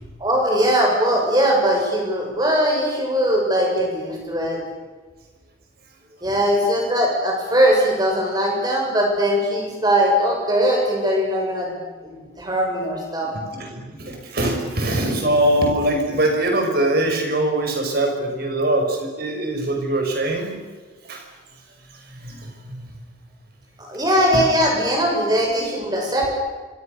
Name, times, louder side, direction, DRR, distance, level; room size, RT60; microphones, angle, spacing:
voice 1, 0.2-4.6 6.2-11.7 12.0-13.3 23.8-26.3, equal, 20° right, 0 dB, 7.3 m, -20 dB
voice 2, 13.3-20.6 21.0-21.3 21.9-22.9 24.3-24.4, right 1 dB, 50° right, 3 dB, 5.9 m, -23 dB
26.5 x 25.5 x 6.8 m, 1.4 s
head